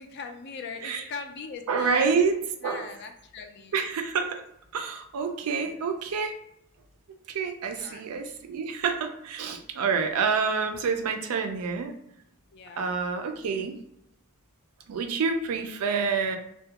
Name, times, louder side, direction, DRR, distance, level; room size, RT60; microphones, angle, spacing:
voice 1, 0.0-2.3 2.6-3.8 5.6-5.8 7.8-8.0 10.2-10.9 12.5-12.9, left 5 dB, 50° left, 6 dB, 0.3 m, -41 dB
voice 2, 1.7-2.4 2.6-2.9 3.7-4.4 4.7-6.4 7.3-11.9 12.8-13.7 14.9-16.4, right 5 dB, 85° right, 6 dB, 0.4 m, -27 dB
2.3 x 2.1 x 2.8 m, 0.78 s
head